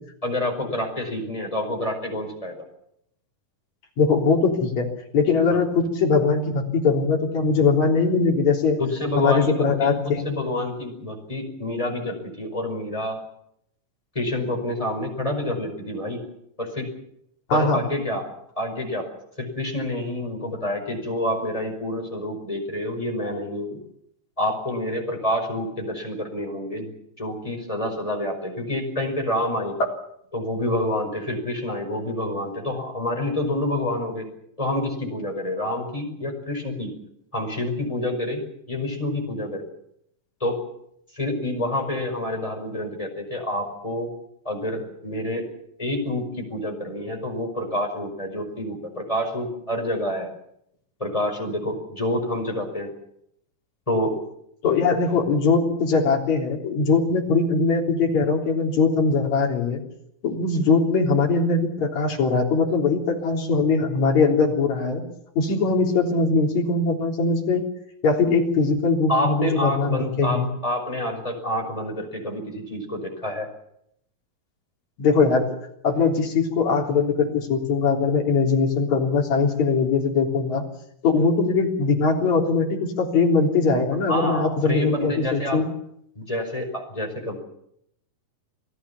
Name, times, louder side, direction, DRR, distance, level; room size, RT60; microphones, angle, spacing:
voice 1, 0.2-2.6 5.5-5.6 8.8-13.2 14.1-16.2 16.6-16.9 17.5-18.3 18.5-19.1 19.4-23.8 24.4-26.9 27.2-29.8 30.3-34.3 34.6-36.9 37.3-39.7 40.4-40.6 41.1-44.1 44.4-45.5 45.8-50.3 51.0-52.9 53.9-54.1 69.1-73.5 84.1-85.6 86.1-87.4, left 1 dB, 10° left, 2 dB, 5.1 m, -28 dB
voice 2, 4.0-8.8 9.2-10.3 17.5-17.8 54.6-59.8 60.2-65.0 65.4-67.6 68.0-70.5 75.0-75.5 75.8-80.6 81.0-85.7, left 4 dB, 50° left, 0 dB, 4.8 m, -21 dB
27.5 x 17.5 x 7.1 m, 0.74 s
omnidirectional pair, 4.1 m